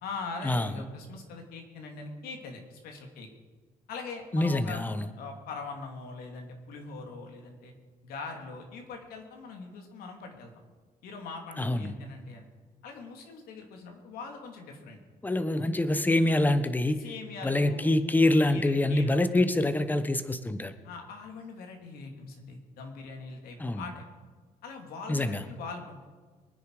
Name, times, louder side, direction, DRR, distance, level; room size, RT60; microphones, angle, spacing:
voice 1, 0.0-3.3 3.9-4.8 5.2-7.7 8.0-10.5 11.0-12.5 12.8-15.0 17.0-17.9 18.5-19.3 20.8-24.0 24.6-26.0, left 4 dB, 85° left, 3 dB, 2.8 m, -42 dB
voice 2, 4.3-5.1 11.6-11.9 15.2-17.0 17.4-20.7 23.6-23.9 25.1-25.4, left 1 dB, 10° left, 11 dB, 1.0 m, -25 dB
23.5 x 10.0 x 4.9 m, 1.4 s
cardioid pair, 120°, 15 cm